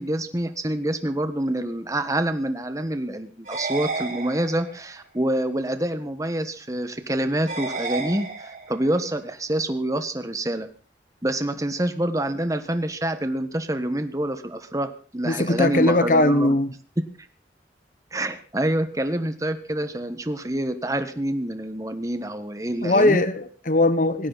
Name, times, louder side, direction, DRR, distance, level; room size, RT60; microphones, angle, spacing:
voice 1, 0.0-10.7 11.2-16.5 18.1-23.2, right 1 dB, 20° right, 9 dB, 1.5 m, -27 dB
sound 1, 3.5-4.9 7.5-8.9, right 3 dB, 50° right, 6.8 m, -31 dB
voice 2, 15.2-16.7 22.8-24.3, left 2 dB, 45° left, 12 dB, 1.1 m, -20 dB
19.0 x 16.5 x 4.2 m, 0.38 s
head